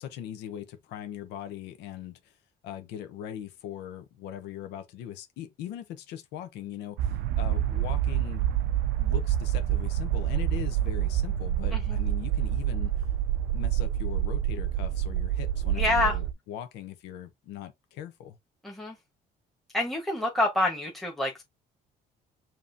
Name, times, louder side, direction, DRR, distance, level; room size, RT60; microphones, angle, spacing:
voice 1, 0.0-2.4 2.6-8.4 9.0-12.9 13.5-18.4, left 10 dB, 90° left, 0.8 m, -40 dB
sound 1, 7.0-16.3, right 11 dB, 80° right, 0.4 m, -27 dB
voice 2, 15.7-16.2 18.6-19.0 19.7-21.4, left 2 dB, ahead, 1.2 m, -27 dB
5.3 x 2.9 x 2.7 m
cardioid pair, 110°, 17 cm